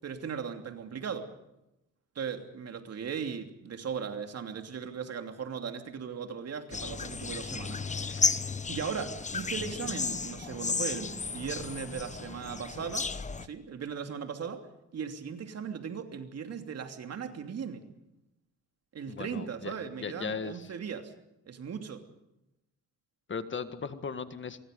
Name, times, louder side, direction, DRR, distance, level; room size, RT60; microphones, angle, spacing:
voice 1, 0.0-1.3 2.1-8.1 8.7-13.1 13.4-14.6 14.9-17.8 18.9-21.1 21.5-22.0, right 6 dB, 55° right, 6 dB, 3.0 m, -38 dB
sound 1, 6.7-13.5, left 4 dB, 25° left, 1.0 m, -33 dB
voice 2, 19.1-20.7 23.3-24.6, left 5 dB, 40° left, 10 dB, 1.8 m, -38 dB
26.0 x 23.0 x 5.3 m, 0.88 s
cardioid pair, 90°, 30 cm